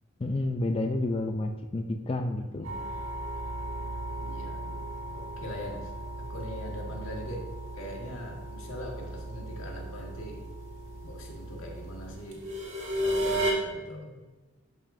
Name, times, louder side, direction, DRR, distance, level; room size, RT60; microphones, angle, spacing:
voice 1, 0.2-2.7, left 2 dB, 30° left, 4 dB, 0.4 m, -30 dB
voice 2, 2.3-2.9 4.2-4.8 5.1-5.9 6.2-7.5 7.7-10.4 11.0-12.5 13.0-14.2, equal, 85° left, 0 dB, 1.6 m, -41 dB
sound 1, 2.6-13.5, right 1 dB, 65° right, 1.8 m, -35 dB
12.0 x 5.4 x 2.6 m, 1.2 s
head